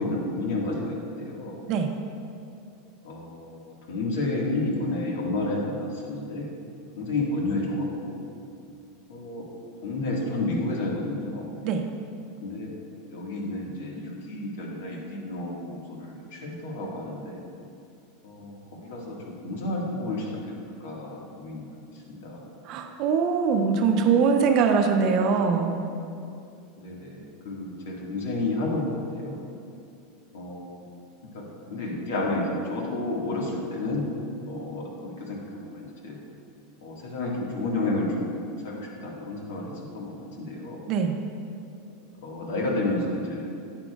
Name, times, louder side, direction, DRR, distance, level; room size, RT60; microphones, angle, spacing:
voice 1, 0.0-1.6 3.0-6.5 7.0-8.3 9.1-9.4 9.8-11.5 12.4-12.7 13.1-17.4 18.2-21.7 22.1-22.5 26.8-29.4 30.3-30.8 31.3-34.1 34.5-36.2 36.8-40.8 42.2-43.5, left 2 dB, 80° left, -2 dB, 1.8 m, -31 dB
voice 2, 22.6-25.8 40.9-41.2, right 5 dB, 45° right, 5 dB, 0.6 m, -22 dB
9.0 x 8.8 x 2.4 m, 2.5 s
supercardioid pair, 135°, 0 cm